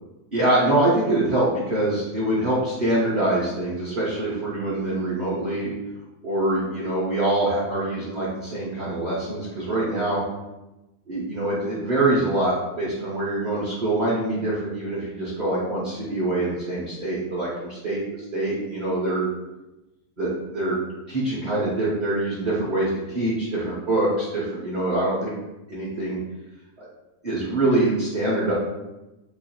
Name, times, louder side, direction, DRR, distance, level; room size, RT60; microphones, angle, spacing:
voice 1, 0.3-5.7 6.2-10.2 11.1-18.0 18.3-19.3 20.2-20.8 21.1-25.3 25.7-26.2 26.8-26.9 27.2-28.5, right 1 dB, 35° right, -8 dB, 0.9 m, -24 dB
3.1 x 2.7 x 4.3 m, 1.0 s
omnidirectional pair, 1.6 m